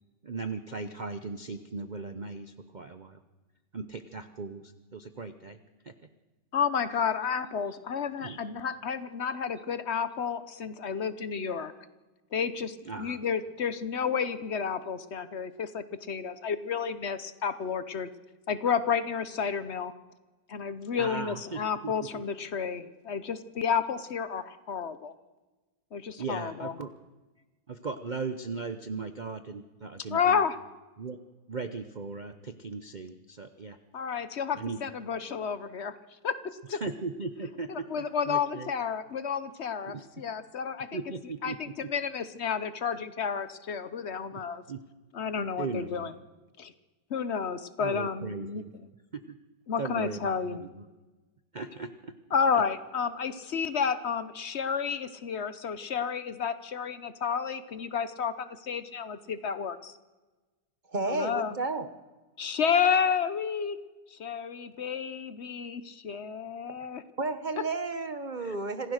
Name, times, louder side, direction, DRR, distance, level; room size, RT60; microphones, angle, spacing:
voice 1, 0.2-3.2 3.7-5.6 5.8-5.9 8.2-8.4 12.9-13.2 20.9-22.2 26.2-26.9 27.7-30.4 31.0-31.2 31.5-33.8 34.6-34.8 36.7-38.7 39.9-40.0 40.9-41.9 44.3-44.4 44.7-44.8 45.6-46.1 47.8-48.7 49.1-49.4 49.8-50.9 51.5-52.1, right 4 dB, 60° right, 9 dB, 0.4 m, -38 dB
voice 2, 6.5-11.7 12.3-18.1 18.5-19.9 20.5-25.1 25.9-26.7 30.1-30.6 33.9-36.0 36.2-36.4 36.7-36.8 37.7-40.9 41.4-44.6 45.1-46.1 46.6-46.7 47.1-48.6 49.7-50.6 52.3-60.0 61.1-61.6 62.4-63.8 64.1-67.0 68.4-68.5, left 6 dB, 50° left, 13 dB, 0.8 m, -31 dB
voice 3, 60.9-61.9 67.2-68.9, right 3 dB, 30° right, 10 dB, 1.0 m, -32 dB
26.5 x 15.5 x 6.5 m, 1.2 s
omnidirectional pair, 2.0 m